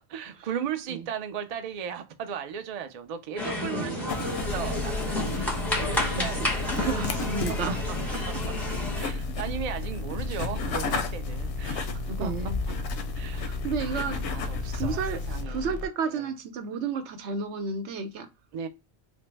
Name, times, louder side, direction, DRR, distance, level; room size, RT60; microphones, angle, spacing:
voice 1, 0.0-7.1 8.3-8.4 8.9-12.3 13.1-13.5 13.8-15.7 16.1-16.3 18.5-18.7, right 8 dB, 55° right, 0.4 m, -37 dB
sound 1, 3.4-9.0, left 1 dB, ahead, 0.7 m, -31 dB
voice 2, 3.7-4.2 6.1-6.5 6.8-7.8 8.1-8.2 12.1-12.6 13.4-14.2 14.7-18.3, right 5 dB, 85° right, 0.9 m, -32 dB
sound 2, 4.1-15.4, left 3 dB, 80° left, 0.9 m, -34 dB
sound 3, 4.4-15.9, left 4 dB, 65° left, 0.3 m, -36 dB
3.3 x 2.0 x 3.1 m
omnidirectional pair, 1.1 m